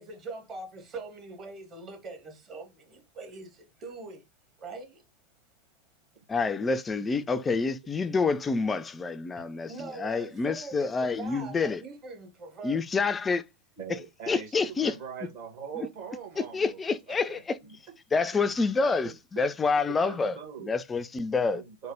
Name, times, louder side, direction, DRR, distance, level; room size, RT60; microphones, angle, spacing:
voice 1, 0.0-4.2 4.6-5.0 9.7-10.9 11.2-12.8, right 3 dB, 30° right, 1.0 m, -42 dB
voice 2, 6.3-11.8 12.6-13.4 14.3-14.9 15.8-15.9 16.4-17.6 18.1-20.4 20.6-21.6, left 4 dB, 15° left, 0.3 m, -28 dB
voice 3, 13.8-17.2 17.6-17.8 19.0-19.1 19.9-20.7 21.4-21.9, right 7 dB, 45° right, 1.3 m, -41 dB
3.3 x 2.1 x 3.7 m
figure-of-eight pair, 90°, 0 cm